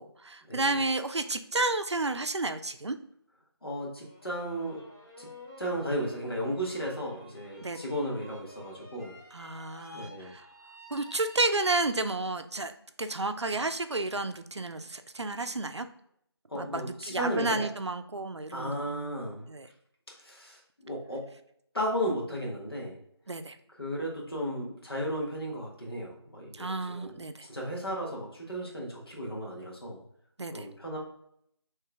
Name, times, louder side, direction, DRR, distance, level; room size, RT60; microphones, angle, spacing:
voice 1, 0.0-3.0 7.6-7.8 9.3-10.5 10.9-12.7 13.0-15.9 16.5-18.9 19.5-19.7 23.3-23.6 26.5-27.5 30.4-30.7, right 2 dB, 90° right, 9 dB, 0.5 m, -31 dB
voice 2, 3.6-4.8 5.2-5.3 5.6-9.1 9.9-10.3 16.5-17.6 18.5-19.4 20.2-21.2 21.7-23.0 23.8-30.0 30.5-31.0, equal, 60° left, -2 dB, 1.7 m, -34 dB
sound 1, 4.0-12.2, left 1 dB, 40° left, 1.8 m, -51 dB
4.6 x 3.2 x 3.3 m, 0.71 s
figure-of-eight pair, 170°, 14 cm